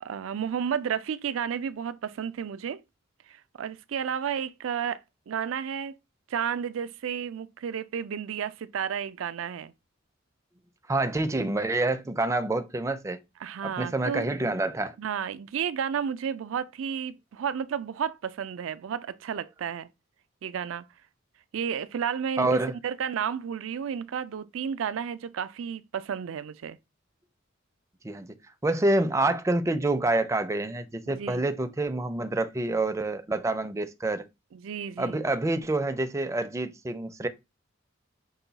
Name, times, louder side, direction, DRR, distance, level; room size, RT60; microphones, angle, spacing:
voice 1, 0.0-2.8 3.3-5.0 5.3-5.9 6.3-9.7 13.4-14.3 15.0-19.9 20.4-20.9 21.5-26.8 31.1-31.4 34.5-35.2, right 7 dB, 80° right, 0.4 m, -32 dB
voice 2, 10.9-13.2 13.6-15.0 22.4-22.7 28.0-28.4 28.6-34.2 35.0-37.3, right 2 dB, 15° right, 0.4 m, -27 dB
5.5 x 2.2 x 3.9 m
head